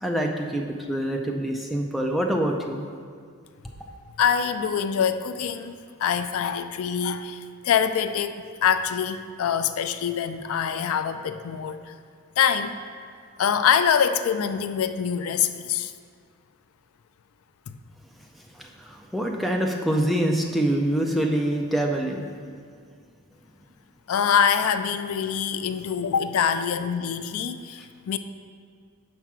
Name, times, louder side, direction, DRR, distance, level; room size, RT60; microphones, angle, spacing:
voice 1, 0.0-2.8 18.6-22.2, right 1 dB, ahead, 0 dB, 0.4 m, -25 dB
voice 2, 4.2-8.3 8.6-11.9 12.4-12.8 13.4-15.9 17.7-17.8 24.1-28.2, left 7 dB, 70° left, 10 dB, 0.3 m, -24 dB
6.0 x 4.5 x 5.9 m, 2.1 s
head